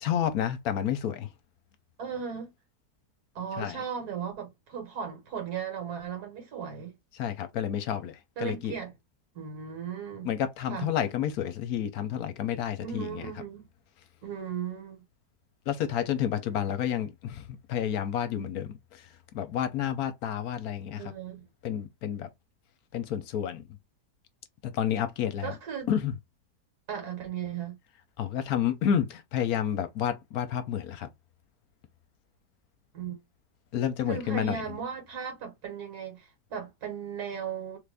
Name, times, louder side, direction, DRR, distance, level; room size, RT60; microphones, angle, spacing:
voice 1, 0.0-1.3 3.6-3.8 7.1-8.8 10.2-13.2 15.7-19.1 19.3-21.1 21.6-22.3 22.9-23.6 24.6-25.5 25.9-26.1 28.2-31.1 33.7-34.8, left 9 dB, 70° left, 1.1 m, -30 dB
voice 2, 2.0-2.5 3.4-6.9 8.4-8.9 9.3-10.3 10.7-10.9 12.8-13.7 14.2-15.0 21.0-21.5 25.4-25.9 26.9-27.8 32.9-33.2 34.1-37.8, right 7 dB, 70° right, 2.0 m, -36 dB
3.4 x 2.5 x 3.4 m
omnidirectional pair, 1.7 m